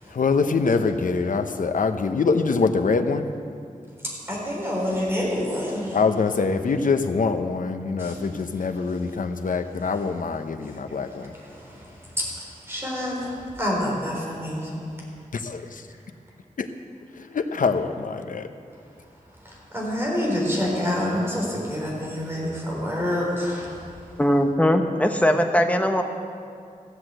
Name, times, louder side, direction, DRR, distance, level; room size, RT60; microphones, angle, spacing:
voice 1, 0.1-3.3 5.9-11.3 15.3-15.8 16.6-16.7 17.2-18.5, left 4 dB, 70° left, 8 dB, 0.8 m, -24 dB
voice 2, 4.3-6.0 8.0-8.2 11.2-12.2 12.7-14.7 19.4-23.7, left 1 dB, 15° right, -4 dB, 4.1 m, -27 dB
voice 3, 24.2-26.0, equal, 10° left, 5 dB, 1.0 m, -20 dB
15.0 x 8.0 x 7.8 m, 2.3 s
wide cardioid pair, 110°, 14 cm